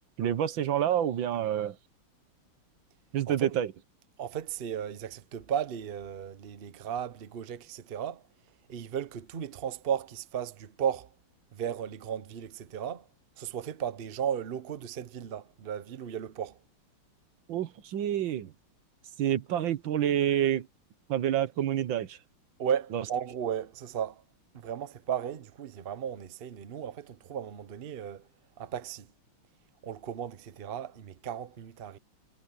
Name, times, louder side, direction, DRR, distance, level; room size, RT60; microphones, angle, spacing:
voice 1, 0.2-1.8 3.1-3.7 17.5-18.5 19.2-20.7 21.1-22.2 22.9-23.0, right 10 dB, 65° right, 1.7 m, -28 dB
voice 2, 4.2-8.2 8.7-11.1 11.5-13.1 13.4-16.6 22.6-24.2 24.5-28.3 28.6-29.1 29.8-32.0, right 8 dB, 85° right, 0.5 m, -35 dB
omnidirectional pair, 2.4 m